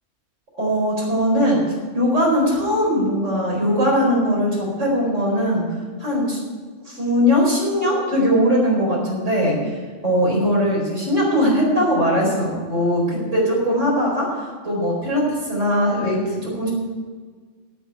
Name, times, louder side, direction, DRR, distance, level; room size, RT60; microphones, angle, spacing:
voice 1, 0.6-1.6 1.9-5.6 6.0-6.4 6.9-9.7 10.0-16.7, equal, 80° right, -3 dB, 5.0 m, -20 dB
9.9 x 9.1 x 9.1 m, 1.5 s
omnidirectional pair, 1.3 m